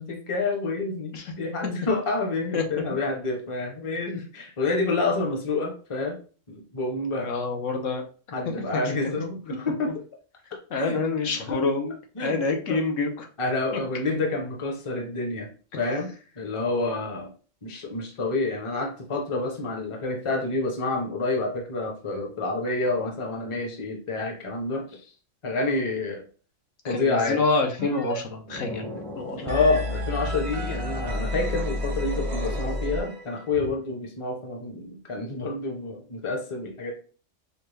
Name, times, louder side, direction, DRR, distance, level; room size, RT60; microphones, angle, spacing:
voice 1, 0.0-1.1 1.4-6.2 6.5-7.3 8.3-9.9 10.7-11.6 12.2-12.4 12.7-12.8 13.4-15.5 15.7-17.3 17.6-25.0 25.4-26.2 26.8-27.4 29.4-36.9, left 3 dB, 30° left, 2 dB, 0.7 m, -28 dB
voice 2, 7.2-8.0 8.5-8.8 10.7-11.9 12.2-13.3 13.7-13.8 26.8-28.9 29.1-29.6, left 3 dB, 80° left, 3 dB, 1.1 m, -27 dB
sound 1, 27.8-28.2 28.4-33.4, left 1 dB, 35° right, 0.6 m, -31 dB
5.2 x 2.2 x 3.2 m, 0.39 s
omnidirectional pair, 1.3 m